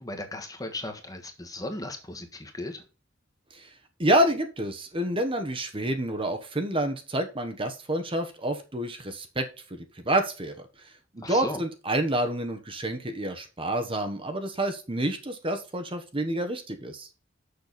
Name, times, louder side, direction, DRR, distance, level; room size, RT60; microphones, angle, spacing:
voice 1, 0.0-2.8 11.2-11.6, left 1 dB, 20° left, 5 dB, 1.4 m, -36 dB
voice 2, 4.0-9.4 9.7-10.5 11.1-17.1, right 1 dB, 25° right, 7 dB, 1.1 m, -28 dB
6.8 x 6.8 x 4.1 m, 0.32 s
head